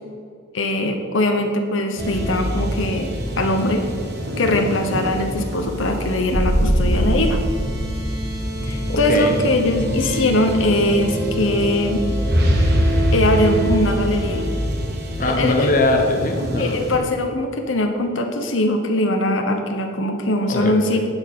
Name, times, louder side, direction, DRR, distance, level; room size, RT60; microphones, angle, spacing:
voice 1, 0.5-3.8 4.4-7.4 8.7-12.0 13.1-14.4 15.2-15.7 16.6-21.0, left 1 dB, 70° left, 4 dB, 1.0 m, -21 dB
sound 1, 2.0-17.0, equal, 55° right, 1.5 m, -23 dB
voice 2, 8.9-9.4 15.2-16.8 20.5-21.1, left 2 dB, 40° left, 3 dB, 1.0 m, -21 dB
11.5 x 4.5 x 7.3 m, 2.3 s
head